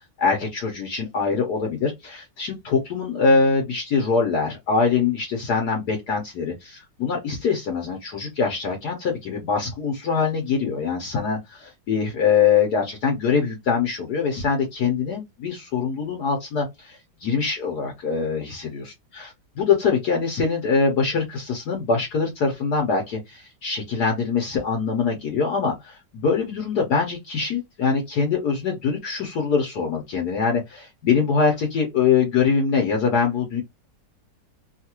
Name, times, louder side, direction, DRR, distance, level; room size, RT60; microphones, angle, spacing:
voice 1, 0.2-18.8 19.1-19.3 19.6-33.6, left 5 dB, 65° left, 1.4 m, -23 dB
3.2 x 2.4 x 2.9 m
omnidirectional pair, 1.9 m